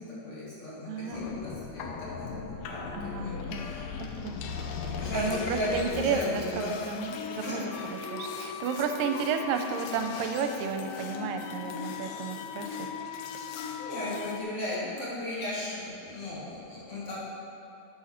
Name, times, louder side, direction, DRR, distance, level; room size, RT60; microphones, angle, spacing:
voice 1, 0.0-3.8 4.1-4.4 4.8-6.7 7.4-7.6 13.3-17.2, left 1 dB, 40° left, -9 dB, 3.6 m, -36 dB
voice 2, 0.9-1.2 2.9-3.7 4.0-4.4 5.1-12.8, right 6 dB, 85° right, 6 dB, 2.4 m, -32 dB
sound 1, 1.1-14.4, left 6 dB, 85° left, 2.5 m, -38 dB
9.9 x 8.1 x 5.8 m, 2.7 s
omnidirectional pair, 3.9 m